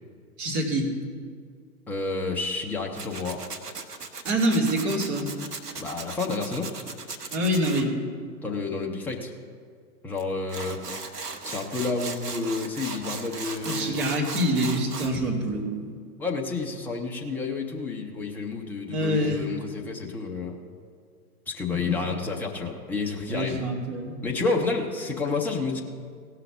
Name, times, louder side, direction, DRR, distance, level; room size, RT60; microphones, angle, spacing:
voice 1, 0.4-0.9 4.3-5.3 7.3-8.0 13.6-15.9 18.9-19.4 21.9-22.0 23.3-24.1, equal, 35° right, -2 dB, 2.6 m, -25 dB
voice 2, 1.9-3.4 5.8-6.7 8.4-9.3 10.0-10.8 11.4-14.0 16.2-20.6 21.5-23.6 24.2-25.8, left 3 dB, 5° left, 0 dB, 0.5 m, -30 dB
Tools, 2.9-7.8 10.2-10.3 10.5-15.1, right 4 dB, 85° right, 1.1 m, -37 dB
16.5 x 5.8 x 7.0 m, 2.1 s
figure-of-eight pair, 115°, 45 cm